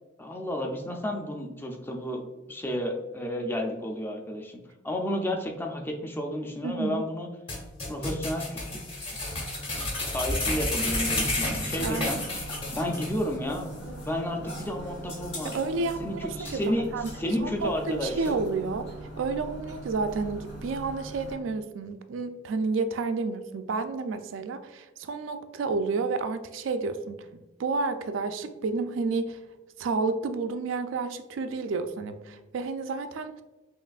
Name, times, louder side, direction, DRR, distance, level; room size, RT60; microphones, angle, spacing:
voice 1, 0.2-7.3 7.9-9.1 9.7-12.2 12.7-15.5 16.0-16.9 17.1-18.3, left 1 dB, 10° left, 2 dB, 0.4 m, -32 dB
voice 2, 6.6-7.0 11.4-12.2 15.4-16.6 16.9-17.1 17.4-29.4 29.8-33.4, right 4 dB, 80° right, 9 dB, 0.4 m, -31 dB
sound 1, 7.5-13.2 13.5-13.6 14.0-14.1 14.5-14.6 15.1-15.9 16.4-16.5, left 2 dB, 30° left, 1.0 m, -31 dB
sound 2, 10.9-21.3, right 1 dB, 65° left, 1.3 m, -41 dB
5.6 x 2.5 x 2.3 m, 1.1 s
head